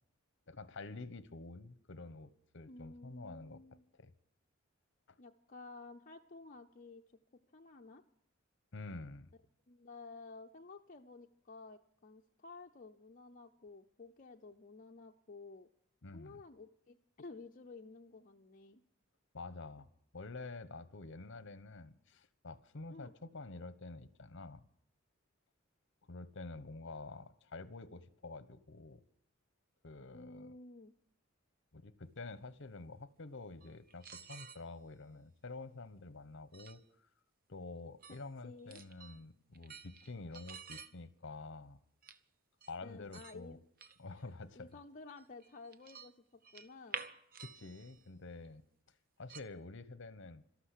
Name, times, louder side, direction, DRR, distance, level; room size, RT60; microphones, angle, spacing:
voice 1, 0.5-3.6 3.9-4.1 5.1-5.2 8.7-9.3 16.0-16.4 19.3-19.9 20.1-24.6 26.1-29.0 29.8-30.6 31.7-36.8 37.5-41.8 42.7-43.6 44.0-44.7 47.4-48.6 49.2-50.4, left 3 dB, 60° left, 15 dB, 1.0 m, -48 dB
voice 2, 2.7-3.8 5.2-7.0 7.5-8.0 9.7-15.7 16.1-18.8 22.9-23.1 30.1-30.9 38.4-38.8 42.8-43.6 44.6-46.1 46.5-47.0, left 3 dB, 40° left, 2 dB, 0.7 m, -53 dB
sound 1, 33.6-34.6 36.5-36.8 38.0-38.2 38.6-39.2 39.5-40.9 42.0-42.2 42.6-42.7 43.1-43.3 43.8-44.2 44.7-44.8 45.2-46.1 46.4-48.0 48.4-48.5 49.3-49.4, right 6 dB, 45° right, 0.9 m, -49 dB
13.0 x 12.5 x 8.3 m, 0.68 s
head